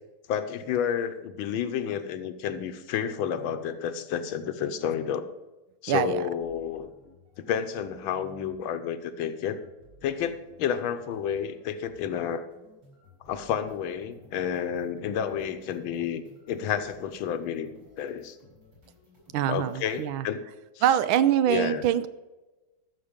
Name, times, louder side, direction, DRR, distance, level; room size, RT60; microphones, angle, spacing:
voice 1, 0.3-5.3 5.8-6.9 7.4-9.6 10.0-12.4 13.3-17.7 18.0-18.4 19.5-20.4 21.5-21.8, left 8 dB, 85° left, 10 dB, 1.6 m, -30 dB
voice 2, 5.9-6.2 19.3-20.3 20.8-22.1, right 11 dB, 90° right, 14 dB, 1.5 m, -24 dB
sound 1, 6.4-20.1, left 2 dB, 65° right, 4.9 m, -56 dB
13.5 x 6.5 x 5.1 m, 1.1 s
omnidirectional pair, 2.2 m